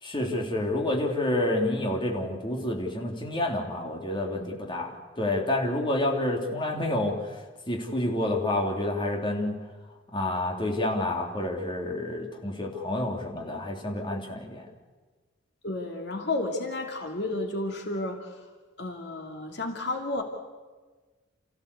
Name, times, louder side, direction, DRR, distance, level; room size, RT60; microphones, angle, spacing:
voice 1, 0.0-7.4 7.7-9.5 10.1-14.7, left 1 dB, 25° left, 0 dB, 3.1 m, -29 dB
voice 2, 15.6-18.4 18.8-20.2, left 2 dB, 55° left, 2 dB, 2.7 m, -32 dB
29.0 x 15.5 x 8.3 m, 1.3 s
head